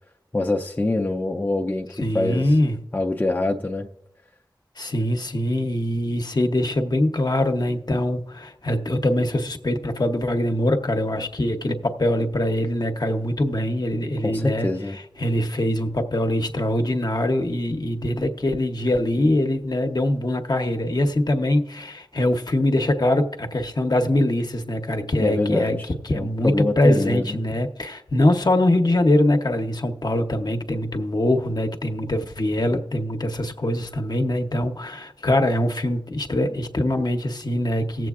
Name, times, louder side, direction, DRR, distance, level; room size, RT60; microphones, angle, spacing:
voice 1, 0.3-1.9 2.1-2.5 2.9-3.9 14.2-15.0 25.2-25.8 26.1-27.4, left 2 dB, 20° left, 2 dB, 0.5 m, -24 dB
voice 2, 2.0-2.8 4.8-14.7 15.2-38.1, left 1 dB, 60° left, 5 dB, 0.8 m, -23 dB
19.0 x 7.6 x 2.4 m, 0.80 s
wide cardioid pair, 50°, 8 cm